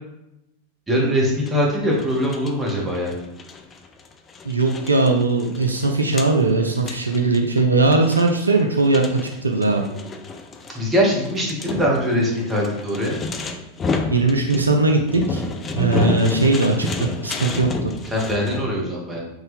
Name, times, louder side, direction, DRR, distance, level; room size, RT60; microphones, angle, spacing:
voice 1, 0.9-3.1 10.7-13.2 18.1-19.2, equal, 15° right, -3 dB, 1.1 m, -22 dB
sound 1, 1.5-18.7, left 3 dB, 20° left, 0.3 m, -31 dB
voice 2, 4.4-9.8 14.1-15.4 15.7-16.9 17.2-17.7, right 3 dB, 80° right, 2 dB, 0.4 m, -19 dB
3.5 x 2.7 x 3.6 m, 0.87 s
figure-of-eight pair, 90°, 0 cm